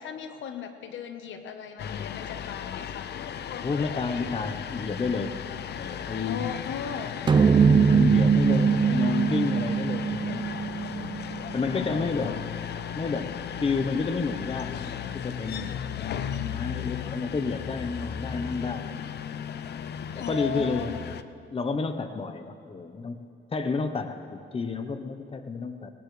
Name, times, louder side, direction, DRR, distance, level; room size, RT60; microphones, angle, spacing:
voice 1, 0.0-3.2 6.2-7.2 11.8-12.5 20.1-21.0, left 7 dB, 75° left, 7 dB, 1.2 m, -37 dB
sound 1, 1.8-21.2, left 9 dB, 55° left, 0.7 m, -36 dB
voice 2, 3.6-5.4 5.8-6.5 7.5-10.5 10.9-11.2 11.5-12.4 12.9-13.3 13.6-18.9 20.1-20.9 21.5-25.9, left 4 dB, 30° left, 8 dB, 0.9 m, -30 dB
sound 2, 7.3-11.9, right 6 dB, 25° right, 0.4 m, -22 dB
19.5 x 19.0 x 3.3 m, 2.7 s
cardioid pair, 90°, 20 cm